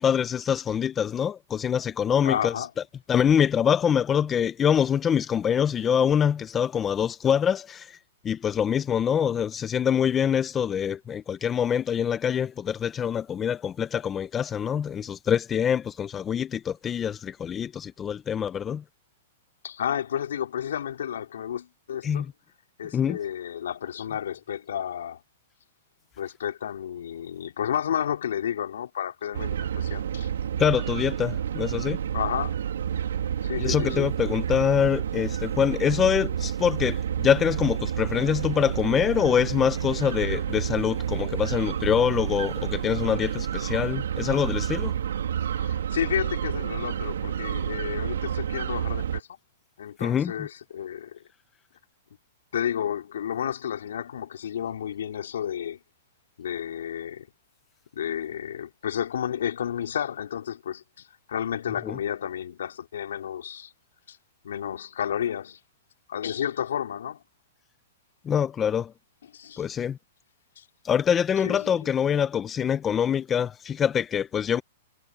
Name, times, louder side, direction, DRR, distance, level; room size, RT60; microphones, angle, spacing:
voice 1, 0.0-8.0 8.2-18.8 22.0-22.3 22.9-23.2 30.6-32.0 33.6-44.9 50.0-50.5 61.8-62.0 68.2-68.9 69.6-70.0 70.8-74.6, left 8 dB, 20° left, 1.1 m, -25 dB
voice 2, 2.2-2.7 5.8-6.0 19.6-22.3 22.8-25.2 26.2-30.3 32.1-32.6 33.4-34.1 45.5-49.3 49.8-51.2 52.5-55.8 56.4-57.3 57.9-63.7 64.1-64.2 64.4-65.6 66.1-67.2 69.3-69.6 70.6-70.7 71.4-71.9, left 9 dB, 80° left, 4.2 m, -31 dB
sound 1, 29.3-49.2, right 9 dB, 85° right, 3.7 m, -29 dB
hypercardioid pair, 140°, 0 cm